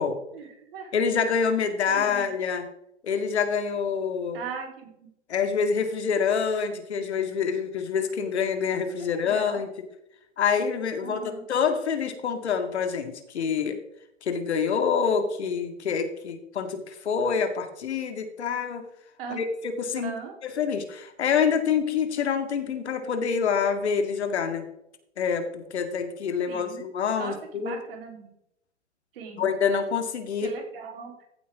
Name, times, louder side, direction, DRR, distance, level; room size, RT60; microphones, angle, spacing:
voice 1, 0.3-0.9 1.9-2.3 4.3-5.1 9.2-9.6 11.0-11.4 19.2-19.4 19.9-20.3 26.5-26.8 27.2-28.3 29.1-29.5 30.4-31.1, right 6 dB, 55° right, 2 dB, 3.6 m, -39 dB
voice 2, 0.9-2.7 3.0-4.4 5.3-9.7 10.4-13.8 14.2-18.8 19.3-20.1 20.4-24.6 25.2-27.8 29.4-30.5, left 6 dB, 65° left, 7 dB, 2.1 m, -26 dB
15.0 x 8.5 x 3.6 m, 0.78 s
figure-of-eight pair, 115°, 35 cm